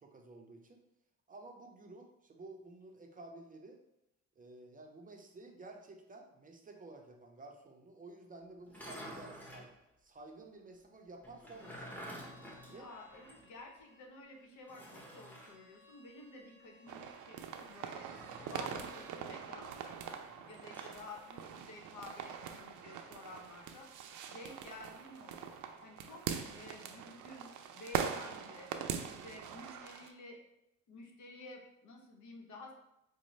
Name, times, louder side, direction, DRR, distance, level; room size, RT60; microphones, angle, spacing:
voice 1, 0.0-0.8 1.3-3.8 4.4-9.7 10.0-11.9 12.7-12.9 20.3-20.4, right 2 dB, 25° right, 2 dB, 0.5 m, -52 dB
sound 1, 8.6-9.7 11.2-13.5 13.8-13.9 14.7-15.6 18.1-19.0 20.4-21.0, equal, 5° left, 0.9 m, -50 dB
Bowed string instrument, 11.6-19.2, left 1 dB, 40° left, 1.0 m, -63 dB
voice 2, 12.6-18.1 18.5-23.9 24.3-25.5 25.8-26.2 26.5-28.7 29.0-30.4 30.9-32.7, left 2 dB, 70° left, 2 dB, 0.8 m, -52 dB
sound 2, 16.9-30.1, right 8 dB, 80° right, 0.5 m, -42 dB
5.0 x 2.0 x 3.1 m, 0.85 s
cardioid pair, 90°, 30 cm